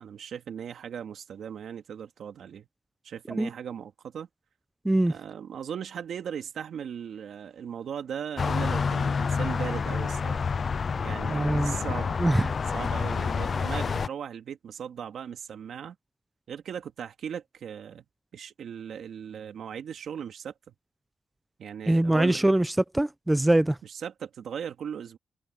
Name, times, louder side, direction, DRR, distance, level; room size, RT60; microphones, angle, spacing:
voice 1, 0.0-2.7 3.0-4.3 5.1-10.4 11.0-12.2 12.7-16.0 16.5-18.0 18.3-20.5 21.6-22.4 23.8-25.2, right 8 dB, 80° right, 2.2 m, -38 dB
sound 1, 8.4-14.1, left 5 dB, 55° left, 0.5 m, -28 dB
voice 2, 11.3-11.7 12.2-12.5 21.9-22.7 22.9-23.8, right 1 dB, 15° right, 0.7 m, -23 dB
cardioid pair, 65°, 0 cm